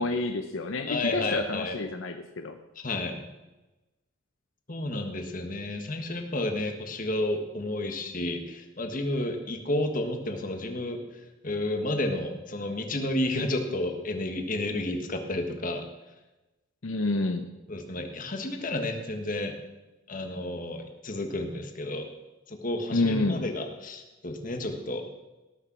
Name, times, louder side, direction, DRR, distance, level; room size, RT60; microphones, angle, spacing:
voice 1, 0.0-2.6 16.8-17.5 22.9-23.4, left 2 dB, 70° left, 7 dB, 0.8 m, -28 dB
voice 2, 0.9-1.8 2.8-3.3 4.7-11.0 11.4-15.9 17.7-19.6 20.1-22.1 22.5-25.0, left 1 dB, 40° left, 5 dB, 1.5 m, -31 dB
18.0 x 6.7 x 6.2 m, 1.1 s
head